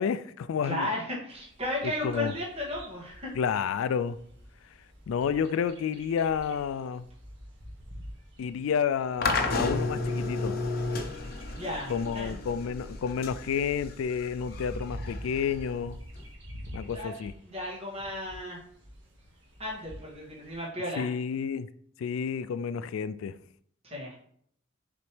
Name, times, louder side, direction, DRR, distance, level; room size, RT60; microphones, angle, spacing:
voice 1, 0.0-0.9 1.8-2.3 3.4-4.2 5.1-7.0 8.4-10.6 11.9-16.0 16.7-17.3 21.0-21.7 22.0-23.3, left 7 dB, 80° left, 0.3 m, -30 dB
voice 2, 0.6-3.3 11.5-12.4 16.9-17.1 17.4-18.6 19.6-21.1 23.8-24.1, left 1 dB, 30° right, 2.2 m, -34 dB
Bird vocalization bird call bird song, 1.3-20.7, equal, 65° right, 1.7 m, -48 dB
sound 1, 9.2-16.3, left 2 dB, 45° left, 0.7 m, -33 dB
6.9 x 4.3 x 3.3 m
head